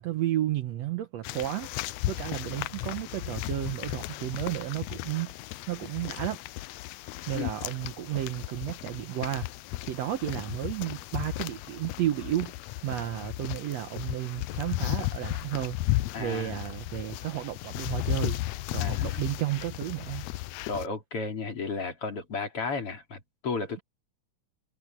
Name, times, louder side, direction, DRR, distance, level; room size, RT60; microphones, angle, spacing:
voice 1, 0.0-1.7 2.1-5.3 5.7-6.4 7.3-9.5 9.8-12.6 12.8-15.8 16.2-18.4 18.7-20.3, right 13 dB, 70° right, 1.8 m, -32 dB
sound 1, 1.2-20.9, left 17 dB, 80° left, 1.6 m, -35 dB
voice 2, 16.1-16.6 18.8-19.2 20.7-23.8, left 4 dB, 45° left, 4.2 m, -33 dB
omnidirectional pair, 3.7 m